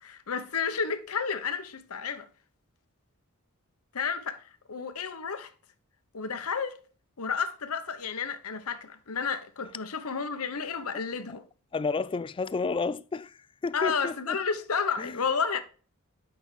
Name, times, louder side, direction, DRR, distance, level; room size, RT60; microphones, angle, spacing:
voice 1, 0.0-2.3 3.9-5.5 6.1-6.8 7.2-11.5 13.7-15.6, left 5 dB, 75° left, 1.0 m, -31 dB
voice 2, 11.7-13.3 13.6-14.4 15.0-15.1, left 4 dB, 25° left, 0.3 m, -30 dB
8.9 x 5.9 x 3.3 m
head